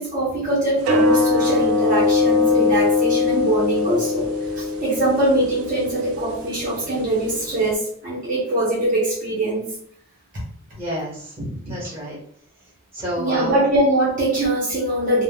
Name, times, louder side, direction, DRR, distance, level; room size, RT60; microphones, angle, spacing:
voice 1, 0.0-4.3 4.5-9.7 13.2-15.2, right 1 dB, 40° right, -6 dB, 0.8 m, -22 dB
sound 1, 0.8-7.7, left 4 dB, 75° right, 0.4 m, -22 dB
voice 2, 10.7-12.2 12.9-13.6, equal, 15° right, -7 dB, 1.3 m, -29 dB
3.3 x 2.1 x 2.3 m, 0.65 s
head